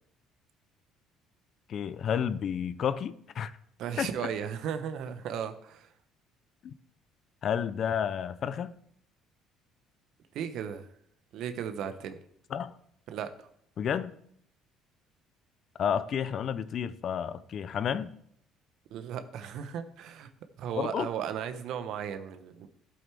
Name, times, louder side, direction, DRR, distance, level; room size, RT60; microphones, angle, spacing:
voice 1, 1.7-3.5 4.0-4.1 6.6-6.8 7.4-8.7 12.5-12.7 13.8-14.1 15.8-18.1 20.8-21.1, left 8 dB, 55° left, 0.6 m, -31 dB
voice 2, 3.8-5.9 10.3-10.9 11.3-12.2 13.1-13.5 18.9-20.3 20.6-22.7, right 8 dB, 70° right, 1.0 m, -36 dB
12.0 x 7.8 x 3.5 m
supercardioid pair, 80°, 0 cm